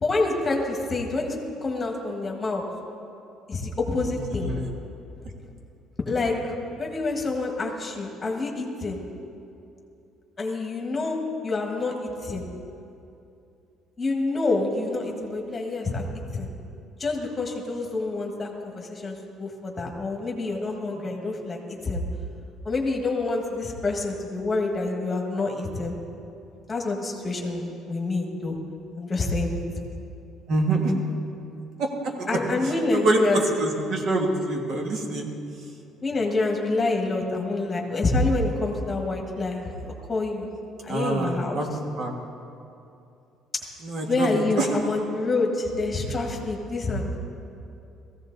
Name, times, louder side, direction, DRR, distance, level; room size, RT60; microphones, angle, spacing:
voice 1, 0.0-1.3 1.6-2.6 3.5-4.5 6.0-6.4 6.8-9.0 10.4-12.4 14.0-16.5 17.0-22.0 22.6-25.9 26.7-28.6 29.0-29.6 32.3-33.4 36.0-40.5 40.8-41.6 44.1-47.2, left 3 dB, 15° left, 0 dB, 1.6 m, -27 dB
voice 2, 30.5-30.9 31.8-31.9 32.2-32.3 32.9-35.3 40.9-42.1 43.8-44.3 44.6-44.7, right 2 dB, 45° right, 2 dB, 1.6 m, -25 dB
16.5 x 15.0 x 4.0 m, 2.7 s
cardioid pair, 180°, 0 cm